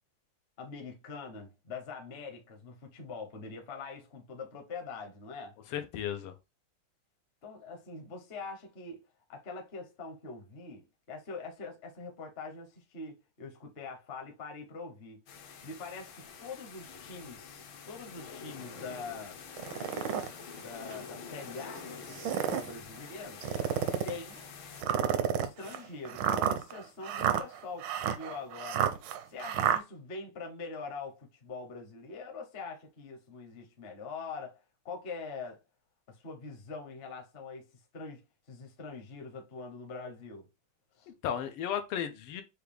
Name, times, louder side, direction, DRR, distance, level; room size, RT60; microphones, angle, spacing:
voice 1, 0.6-5.5 7.4-9.0 9.3-15.2 15.6-19.4 20.5-23.4 24.0-24.4 25.2-28.9 29.3-34.6 34.8-35.6 36.1-40.5 41.0-41.1, left 4 dB, 45° left, 0.8 m, -44 dB
voice 2, 5.7-6.3 41.1-42.4, left 9 dB, 90° left, 1.7 m, -34 dB
sound 1, 15.3-24.8, left 6 dB, 70° left, 1.5 m, -47 dB
sound 2, 19.6-20.3 20.9-21.0 22.0-22.7 23.4-24.2 24.8-29.8, right 9 dB, 75° right, 1.1 m, -30 dB
6.3 x 2.3 x 3.3 m
omnidirectional pair, 2.4 m